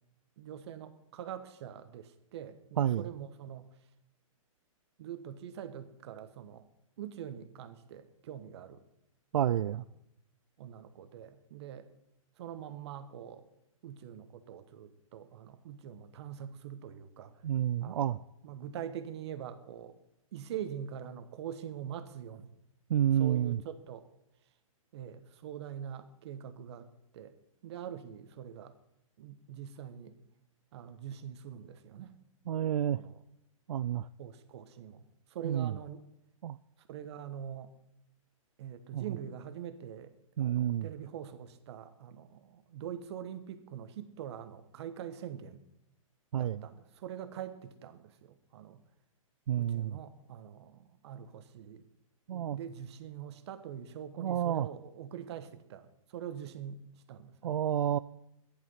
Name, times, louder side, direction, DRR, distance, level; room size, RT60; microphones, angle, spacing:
voice 1, 0.4-3.7 5.0-6.7 7.0-8.8 9.7-9.8 10.6-11.9 12.4-13.4 13.8-17.4 17.8-20.0 20.3-22.5 23.2-24.1 24.9-26.9 27.1-27.3 27.6-28.7 29.2-30.2 30.7-32.2 32.9-33.2 34.2-36.0 36.8-37.7 38.6-40.1 40.4-45.6 46.3-48.8 49.6-51.9 52.3-57.6, right 9 dB, 50° right, 11 dB, 1.4 m, -44 dB
voice 2, 2.8-3.1 9.3-9.9 17.4-18.2 22.9-23.6 32.5-33.0 33.7-34.1 35.4-35.7 36.4-36.6 38.9-39.0 40.4-40.9 46.3-46.6 49.5-50.0 52.3-52.6 54.2-54.7 57.4-58.0, right 10 dB, 80° right, 15 dB, 0.4 m, -29 dB
12.5 x 10.5 x 5.7 m, 0.83 s
hypercardioid pair, 145°, 18 cm